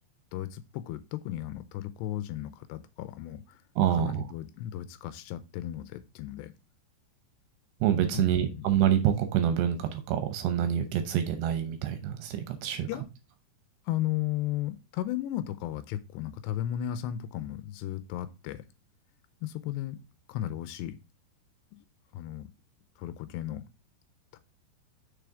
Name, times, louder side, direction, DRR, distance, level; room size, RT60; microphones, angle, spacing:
voice 1, 0.3-3.6 3.9-6.5 8.1-8.6 12.9-13.1 13.9-18.6 19.4-20.0 20.3-21.0 21.7-21.8 22.1-22.5 23.0-23.7 24.3-24.4, left 13 dB, 85° left, 12 dB, 2.8 m, -35 dB
voice 2, 3.8-4.3 7.8-12.9, right 10 dB, 80° right, 8 dB, 2.9 m, -27 dB
6.8 x 6.3 x 3.6 m, 0.28 s
omnidirectional pair, 4.9 m